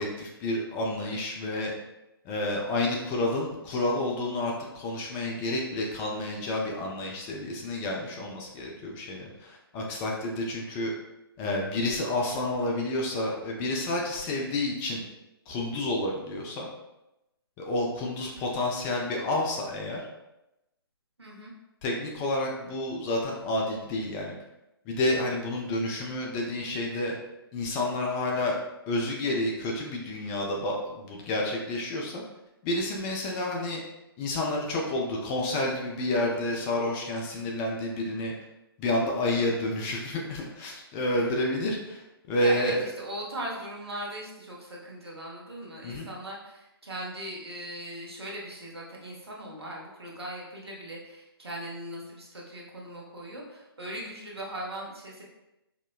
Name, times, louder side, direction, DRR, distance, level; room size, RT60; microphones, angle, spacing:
voice 1, 0.0-1.7 2.2-10.9 11.4-15.0 15.5-16.7 17.6-20.0 21.8-24.3 24.9-27.1 27.5-28.6 28.9-32.2 32.6-33.8 34.2-38.3 38.8-42.8 45.8-46.1, left 1 dB, 15° left, -1 dB, 0.4 m, -29 dB
voice 2, 21.2-21.5 41.1-41.4 42.4-55.2, right 1 dB, 80° right, -3 dB, 1.0 m, -39 dB
4.9 x 2.0 x 2.2 m, 0.93 s
figure-of-eight pair, 130°, 13 cm